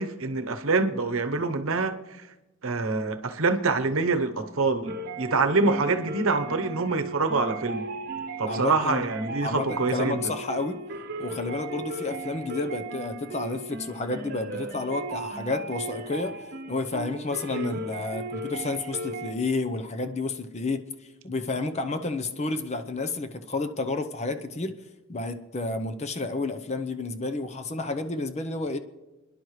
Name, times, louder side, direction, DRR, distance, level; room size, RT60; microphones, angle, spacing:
voice 1, 0.0-1.9 2.6-7.8 8.4-10.3 17.5-17.7, right 3 dB, 70° right, 9 dB, 0.9 m, -26 dB
sound 1, 4.9-19.3, right 2 dB, 45° right, 1.1 m, -36 dB
voice 2, 8.5-9.0 9.4-10.8 11.2-16.3 16.7-20.8 21.2-24.7 25.1-28.8, left 3 dB, 30° left, 8 dB, 0.7 m, -30 dB
29.5 x 10.5 x 3.2 m, 1.1 s
head